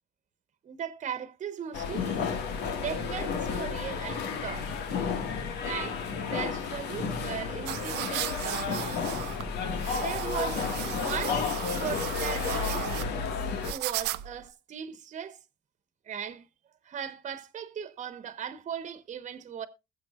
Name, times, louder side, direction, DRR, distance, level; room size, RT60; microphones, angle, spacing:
voice 1, 0.6-2.4 2.7-4.7 5.6-8.9 9.9-11.5 11.8-12.9 13.6-15.4 16.1-16.5 16.8-19.7, right 8 dB, 45° right, 1.3 m, -38 dB
sound 1, 1.7-13.7, left 5 dB, 80° left, 1.9 m, -32 dB
sound 2, 7.7-14.5, right 17 dB, 90° right, 0.7 m, -36 dB
21.0 x 7.6 x 2.5 m
cardioid pair, 110°, 17 cm